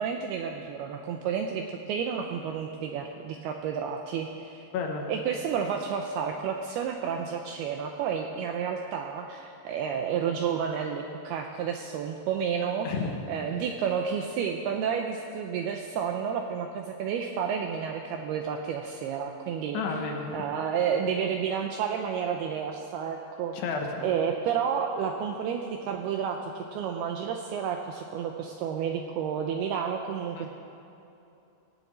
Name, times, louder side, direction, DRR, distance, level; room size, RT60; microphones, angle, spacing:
voice 1, 0.0-4.6 5.1-12.9 13.3-19.8 20.3-23.6 24.0-30.5, right 7 dB, 80° right, 3 dB, 2.3 m, -31 dB
voice 2, 4.7-5.1 12.8-13.1 19.7-20.3 23.5-24.1 30.3-30.5, left 5 dB, 75° left, 2 dB, 3.1 m, -31 dB
18.5 x 6.9 x 8.5 m, 2.8 s
omnidirectional pair, 5.2 m